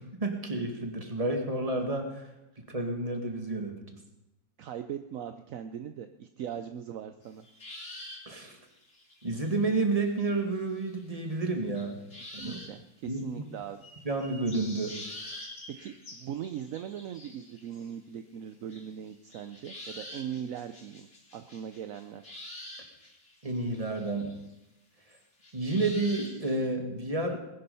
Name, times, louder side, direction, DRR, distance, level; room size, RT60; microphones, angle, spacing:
voice 1, 0.0-2.3 2.7-3.8 8.3-8.6 9.2-12.0 12.3-12.6 13.1-13.4 14.0-15.0 23.4-24.4 25.5-27.4, right 2 dB, 20° right, 3 dB, 2.0 m, -30 dB
voice 2, 4.6-7.5 12.4-13.8 15.8-21.1 21.3-22.3, right 9 dB, 65° right, 9 dB, 0.8 m, -40 dB
sound 1, 7.2-10.2 10.5-11.5 11.7-12.7 13.2-13.3 13.8-17.9 18.7-24.5 25.1-26.7, left 1 dB, 40° left, 3.2 m, -46 dB
19.5 x 11.0 x 5.6 m, 0.95 s
omnidirectional pair, 2.0 m